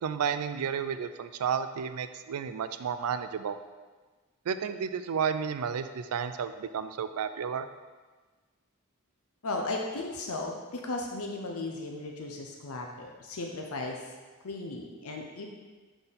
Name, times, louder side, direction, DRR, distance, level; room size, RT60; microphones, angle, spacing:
voice 1, 0.0-3.6 4.5-7.7, right 7 dB, 80° right, 11 dB, 0.4 m, -32 dB
voice 2, 9.4-14.0 14.4-15.5, left 2 dB, 75° left, 1 dB, 0.7 m, -36 dB
6.8 x 3.8 x 4.1 m, 1.3 s
head